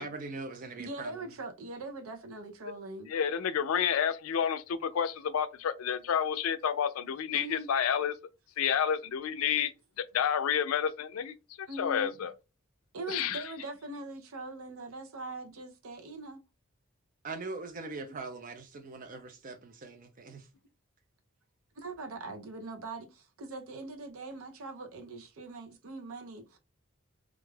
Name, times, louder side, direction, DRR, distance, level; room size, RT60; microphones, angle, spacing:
voice 1, 0.0-1.3 17.2-20.5, right 3 dB, 40° right, 0.5 m, -41 dB
voice 2, 0.8-3.1 7.3-7.7 11.7-12.1 12.9-16.4 18.1-18.2 21.8-26.6, right 2 dB, 80° right, 0.6 m, -42 dB
voice 3, 3.1-8.2 8.6-12.3 13.1-13.5, left 8 dB, 85° left, 0.4 m, -30 dB
2.4 x 2.3 x 3.2 m
head